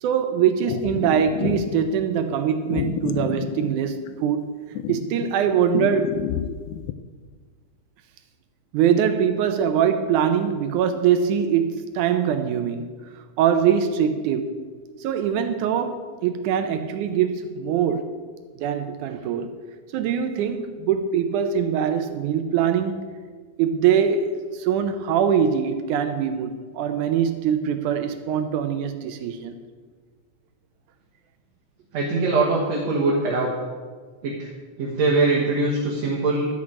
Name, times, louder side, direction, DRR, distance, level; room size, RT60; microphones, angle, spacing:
voice 1, 0.0-4.5 4.9-6.2 8.7-12.9 13.4-14.6 15.0-18.1 18.6-19.5 19.9-23.0 23.6-29.6, right 8 dB, 80° right, 8 dB, 2.2 m, -23 dB
sound 1, 0.7-1.9 2.7-4.3 4.8-6.9, left 11 dB, 80° left, 1.9 m, -29 dB
voice 2, 31.9-33.5 34.2-34.5 34.8-36.5, right 3 dB, 65° right, -3 dB, 2.6 m, -22 dB
12.0 x 6.2 x 8.5 m, 1.5 s
omnidirectional pair, 3.5 m